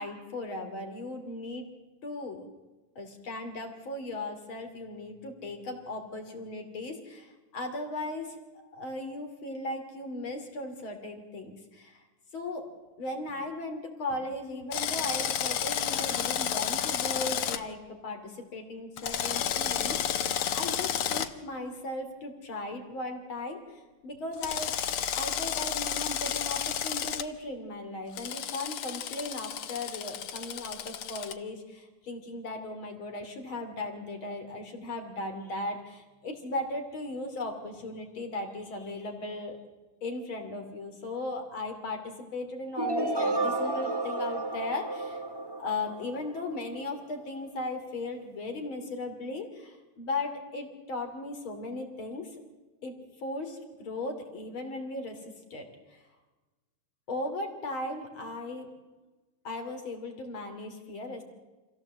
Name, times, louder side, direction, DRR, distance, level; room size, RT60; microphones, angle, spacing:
voice 1, 0.0-1.7 2.0-2.5 3.0-8.4 8.7-12.0 12.3-12.7 13.0-24.8 25.2-39.6 40.0-45.2 45.6-52.3 52.8-56.0 57.1-58.7 59.4-61.2, left 2 dB, 65° left, 5 dB, 3.6 m, -37 dB
Drill, 14.7-17.6 19.0-21.3 24.4-27.2 28.2-31.3, left 9 dB, 85° left, 2.0 m, -31 dB
sound 1, 42.8-46.7, right 2 dB, 15° right, 1.2 m, -31 dB
26.5 x 16.5 x 7.5 m, 1.2 s
omnidirectional pair, 2.4 m